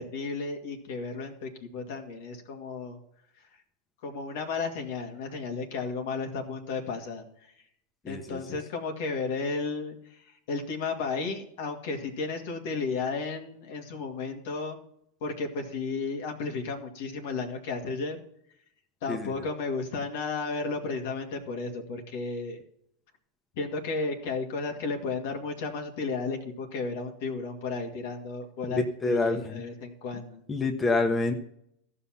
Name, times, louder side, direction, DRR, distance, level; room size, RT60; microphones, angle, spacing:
voice 1, 0.0-3.0 4.0-7.5 8.1-14.8 15.2-18.2 19.0-22.6 23.5-30.4, left 4 dB, 65° left, 3 dB, 2.2 m, -33 dB
voice 2, 28.7-29.4 30.5-31.3, left 3 dB, 20° left, 3 dB, 1.2 m, -26 dB
14.5 x 5.6 x 5.8 m, 0.72 s
hypercardioid pair, 100°, 0 cm